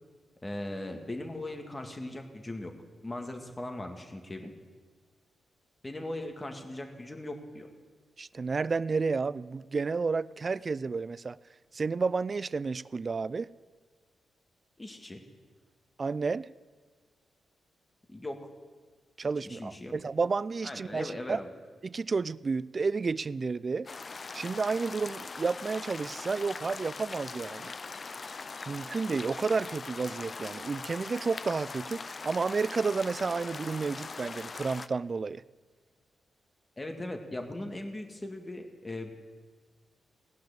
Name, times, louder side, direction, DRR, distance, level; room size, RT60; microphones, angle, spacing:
voice 1, 0.4-2.7 3.0-4.5 5.8-7.7 14.8-15.2 18.1-18.5 19.4-19.9 20.6-21.5 36.8-39.1, left 1 dB, 25° left, 4 dB, 1.9 m, -39 dB
voice 2, 8.2-11.4 11.7-13.5 16.0-16.5 19.2-21.4 21.8-23.9 24.3-27.7 28.7-35.4, right 4 dB, 45° right, 19 dB, 0.3 m, -31 dB
sound 1, 23.9-34.9, left 4 dB, 45° left, 0.5 m, -41 dB
17.5 x 5.9 x 8.8 m, 1.5 s
supercardioid pair, 50°, 0 cm